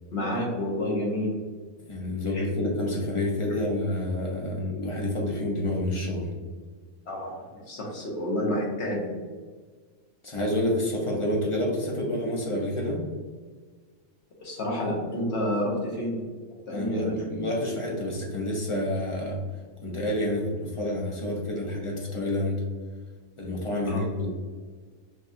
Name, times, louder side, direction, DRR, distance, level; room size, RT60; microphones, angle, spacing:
voice 1, 0.1-1.4 2.3-2.4 7.1-9.1 14.4-16.2 16.7-17.3 23.8-24.0, left 1 dB, 55° left, -2 dB, 1.2 m, -29 dB
voice 2, 1.9-6.3 10.2-13.0 16.7-19.4 19.8-22.6 23.4-24.3, left 1 dB, 30° left, -2 dB, 0.7 m, -28 dB
6.5 x 2.3 x 2.7 m, 1.5 s
omnidirectional pair, 1.4 m